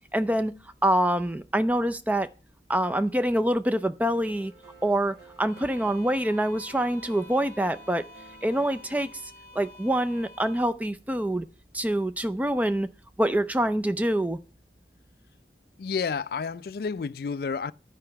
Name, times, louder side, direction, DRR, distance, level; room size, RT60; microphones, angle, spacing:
voice 1, 0.1-0.5 0.8-2.3 2.7-4.5 4.8-8.0 8.4-9.1 9.5-11.5 11.7-12.9 13.2-14.4, right 1 dB, 10° right, 0.4 m, -25 dB
sound 1, 4.1-10.0, right 2 dB, 65° right, 1.9 m, -53 dB
Bowed string instrument, 5.5-10.8, left 2 dB, 15° left, 2.0 m, -49 dB
voice 2, 15.8-17.7, left 5 dB, 55° left, 0.3 m, -30 dB
9.8 x 4.9 x 5.7 m
head